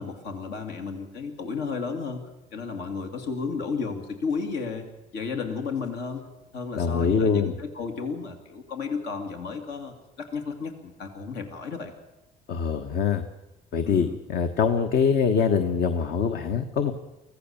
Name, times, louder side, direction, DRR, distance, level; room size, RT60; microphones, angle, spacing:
voice 1, 0.0-2.2 2.5-4.8 5.1-6.2 6.5-11.9 13.8-14.2, left 5 dB, 85° left, 5 dB, 2.4 m, -33 dB
voice 2, 6.8-7.5 12.5-13.2 13.7-16.9, left 6 dB, 65° left, 7 dB, 1.3 m, -24 dB
24.5 x 16.0 x 7.1 m, 1.0 s
cardioid pair, 110°, 17 cm